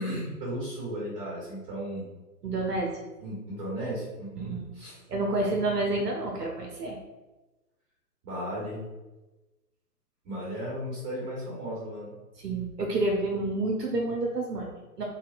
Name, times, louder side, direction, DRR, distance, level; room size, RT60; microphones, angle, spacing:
voice 1, 0.0-2.1 3.2-4.9 5.7-5.8 8.2-8.8 10.2-12.1, equal, 25° right, -7 dB, 1.4 m, -35 dB
voice 2, 2.4-2.9 4.4-4.7 5.1-7.0 12.4-15.0, right 2 dB, 80° right, -1 dB, 0.6 m, -29 dB
2.7 x 2.1 x 2.5 m, 1.1 s
figure-of-eight pair, 120°, 48 cm